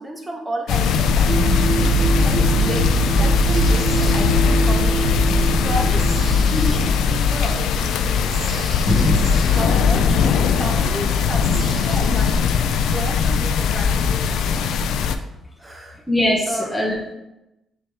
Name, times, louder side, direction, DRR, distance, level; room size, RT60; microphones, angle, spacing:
voice 1, 0.0-1.7 2.0-4.9 5.6-6.1 6.4-8.6 9.5-10.1 10.6-14.6 15.6-16.0 16.5-16.7, right 1 dB, 20° right, 1 dB, 1.3 m, -32 dB
sound 1, 0.7-15.2, left 6 dB, 80° left, 0.4 m, -19 dB
sound 2, 1.3-6.9, right 5 dB, 60° right, 0.8 m, -23 dB
sound 3, 3.5-12.4, right 2 dB, 45° right, 1.2 m, -39 dB
voice 2, 8.8-9.3 10.8-10.9 12.8-12.9 16.1-17.1, left 1 dB, 5° left, -4 dB, 1.6 m, -22 dB
6.7 x 4.7 x 3.5 m, 0.93 s
cardioid pair, 90°, 0 cm